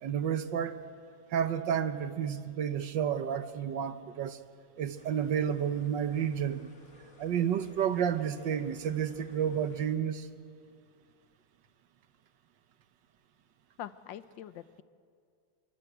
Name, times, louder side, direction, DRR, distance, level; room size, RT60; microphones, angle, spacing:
voice 1, 0.0-0.8 1.3-4.4 4.8-6.7 7.2-10.3, right 8 dB, 70° right, 11 dB, 1.7 m, -31 dB
sound 1, 5.0-9.9, left 2 dB, 40° left, 3.0 m, -58 dB
voice 2, 13.8-14.8, left 10 dB, 80° left, 13 dB, 1.5 m, -44 dB
26.0 x 23.5 x 8.1 m, 2.2 s
omnidirectional pair, 2.0 m